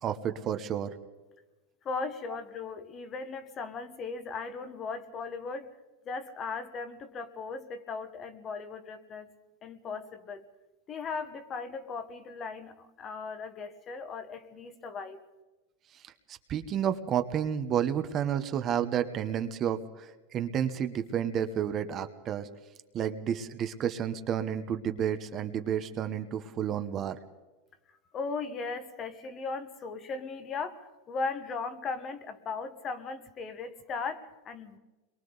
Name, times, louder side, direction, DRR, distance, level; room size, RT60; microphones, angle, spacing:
voice 1, 0.0-0.9 16.3-22.5 22.9-27.2, right 9 dB, 30° right, 9 dB, 0.9 m, -31 dB
voice 2, 1.8-5.7 6.0-9.3 9.6-10.5 10.9-15.2 28.1-34.8, left 4 dB, 25° left, 10 dB, 1.2 m, -37 dB
29.0 x 22.5 x 4.0 m, 1.1 s
supercardioid pair, 145°, 0 cm